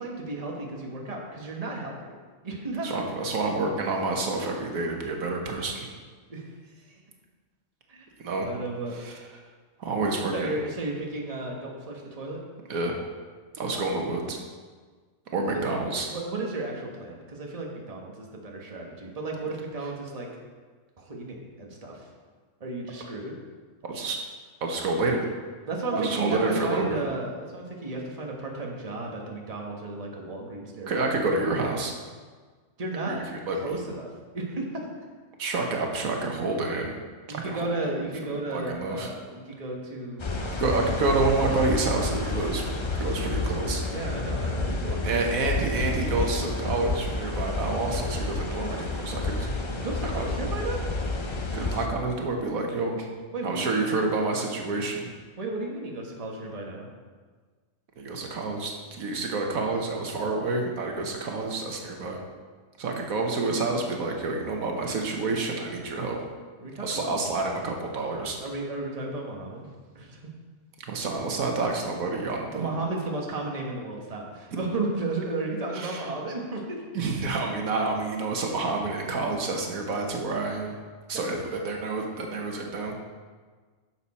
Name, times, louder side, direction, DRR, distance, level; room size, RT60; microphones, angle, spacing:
voice 1, 0.0-2.0 2.4-2.9 6.3-6.5 6.9-7.0 7.9-8.1 8.4-8.9 10.3-12.4 15.5-15.6 16.1-20.3 21.0-22.1 22.6-23.4 25.7-31.1 32.8-34.9 37.3-40.6 43.3-45.2 45.5-45.8 49.8-50.8 53.3-53.8 55.4-56.9 66.6-67.1 68.4-69.7 69.9-70.3 72.5-76.8, right 2 dB, 30° right, -1 dB, 1.4 m, -34 dB
voice 2, 2.8-5.9 8.2-8.5 9.0-9.1 9.8-10.5 12.7-13.0 13.5-14.4 15.3-16.1 23.9-24.2 24.6-25.3 25.9-27.0 30.9-31.9 33.1-33.8 35.4-37.0 37.3-37.7 38.5-39.1 40.6-42.6 42.9-43.8 45.0-49.5 50.1-50.2 51.5-53.1 53.4-55.1 58.0-62.2 62.8-66.2 66.8-68.4 70.9-72.7 75.7-76.0 76.9-80.7 81.1-82.9, right 3 dB, 85° right, 1 dB, 1.5 m, -28 dB
sound 1, 40.2-51.9, left 2 dB, 30° left, 0.5 m, -30 dB
10.5 x 7.0 x 4.2 m, 1.5 s
omnidirectional pair, 1.4 m